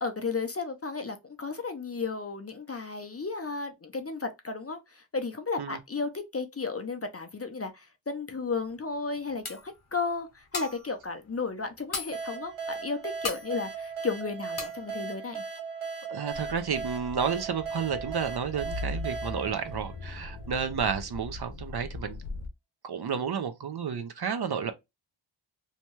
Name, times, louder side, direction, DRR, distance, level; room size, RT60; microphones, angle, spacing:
voice 1, 0.0-15.4, left 4 dB, 30° left, 0.4 m, -34 dB
sound 1, 8.6-8.7 9.2-9.3 9.4-9.9 10.3-11.0 11.3-11.4 11.6-12.3 12.7-12.8 13.2-13.5 13.9-14.2 14.6-14.8, left 4 dB, 50° left, 0.9 m, -36 dB
sound 2, 12.1-20.6, right 5 dB, 70° right, 0.9 m, -38 dB
voice 2, 16.1-22.2 22.8-24.7, right 7 dB, 55° right, 0.5 m, -31 dB
sound 3, 16.3-22.5, left 2 dB, 90° left, 0.7 m, -40 dB
2.8 x 2.2 x 2.9 m
wide cardioid pair, 70°, 49 cm